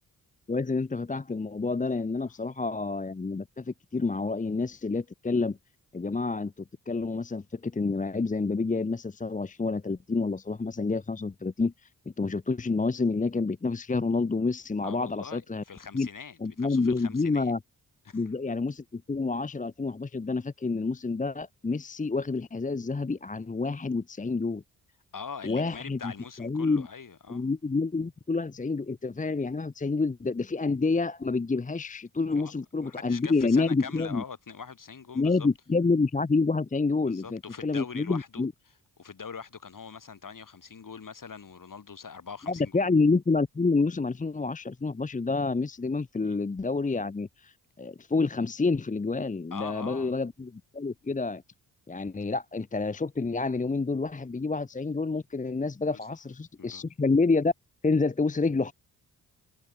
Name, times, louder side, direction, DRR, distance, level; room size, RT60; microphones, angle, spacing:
voice 1, 0.5-5.6 5.9-11.9 12.2-15.6 15.9-16.1 16.4-17.6 18.1-24.6 25.4-26.1 26.4-26.9 27.3-34.2 35.1-38.5 42.5-51.4 51.9-57.5 57.8-58.7, left 3 dB, 20° left, 0.9 m, -28 dB
voice 2, 14.8-17.5 18.1-18.2 25.1-27.4 32.3-35.5 37.1-38.4 39.0-42.9 46.3-46.4 49.5-50.1 55.9-56.0 56.6-56.9, left 6 dB, 50° left, 7.6 m, -43 dB
supercardioid pair, 50°, 40 cm